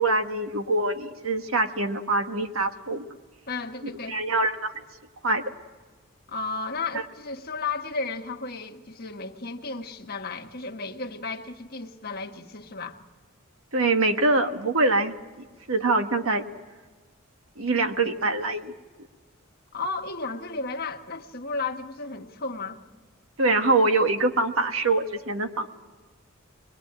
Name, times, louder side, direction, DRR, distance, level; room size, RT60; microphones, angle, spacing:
voice 1, 0.0-3.0 4.1-4.7 5.2-5.4 13.7-16.5 17.6-18.7 23.4-25.7, right 2 dB, 75° right, 1.4 m, -24 dB
voice 2, 3.5-4.2 6.3-13.0 19.7-22.8, left 3 dB, 45° left, 1.5 m, -33 dB
23.0 x 22.0 x 8.9 m
head